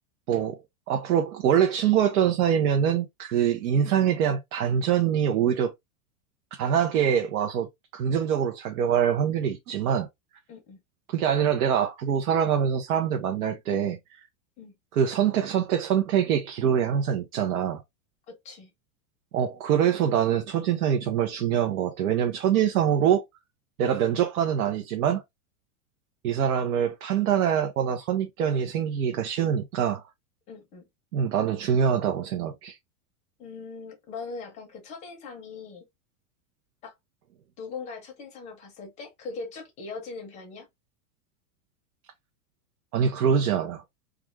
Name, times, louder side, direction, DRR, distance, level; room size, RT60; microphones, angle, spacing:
voice 1, 0.3-0.6 0.9-5.7 6.5-10.1 11.1-14.0 15.0-17.8 19.3-23.2 23.8-25.2 26.2-30.0 31.1-32.8 42.9-43.8, right 8 dB, 85° right, 0.7 m, -24 dB
voice 2, 10.5-10.8 14.6-14.7 18.3-18.7 30.5-30.8 33.4-35.9 36.8-36.9 37.6-40.7, left 4 dB, 15° left, 0.5 m, -40 dB
2.4 x 2.4 x 3.0 m
supercardioid pair, 160°, 43 cm